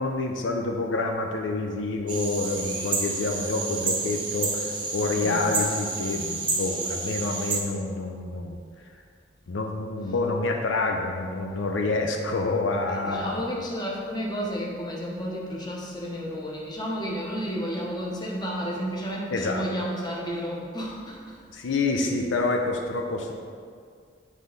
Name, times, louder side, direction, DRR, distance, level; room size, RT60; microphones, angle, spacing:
voice 1, 0.0-8.6 9.5-13.4 19.3-19.6 21.5-23.3, left 3 dB, 90° left, 3 dB, 0.5 m, -27 dB
sound 1, 2.1-7.6, right 3 dB, 25° right, 0.7 m, -30 dB
voice 2, 12.9-21.4, equal, 25° left, -3 dB, 0.8 m, -32 dB
7.3 x 3.3 x 3.9 m, 2.1 s
head